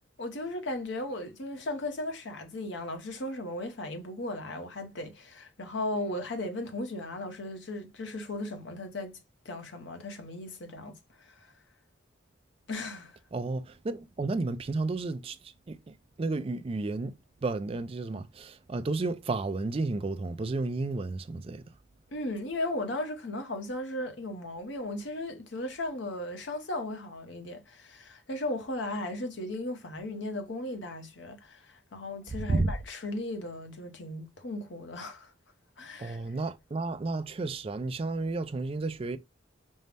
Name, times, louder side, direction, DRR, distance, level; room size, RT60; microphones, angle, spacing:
voice 1, 0.2-9.2 9.4-11.5 12.7-13.2 22.1-35.3 35.8-36.2, left 1 dB, 65° left, 0.9 m, -36 dB
voice 2, 13.3-21.7 32.4-32.7 36.0-39.2, right 3 dB, 30° right, 0.3 m, -32 dB
5.4 x 2.1 x 3.2 m
head